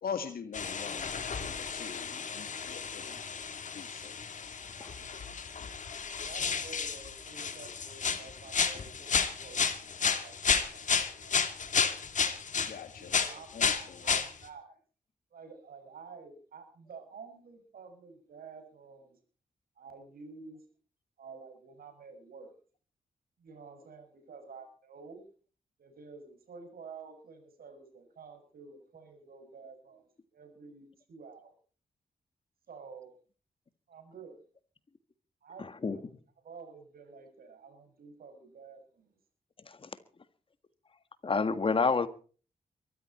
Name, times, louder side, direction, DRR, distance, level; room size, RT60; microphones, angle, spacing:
voice 1, 0.0-3.2 3.7-4.1 12.6-13.2 13.5-14.1, left 6 dB, 85° left, 1.9 m, -42 dB
sound 1, 0.5-12.8 13.1-14.3, left 6 dB, 55° left, 2.4 m, -32 dB
voice 2, 6.2-11.3 11.6-11.8 13.0-14.8 15.3-19.2 19.8-20.6 21.2-22.5 23.4-25.2 25.8-30.0 30.3-31.5 32.7-33.1 33.9-34.4 35.4-39.2, right 5 dB, 80° right, 6.5 m, -50 dB
voice 3, 41.2-42.1, left 4 dB, 35° left, 1.7 m, -27 dB
23.0 x 14.0 x 4.3 m
wide cardioid pair, 130°, 15 cm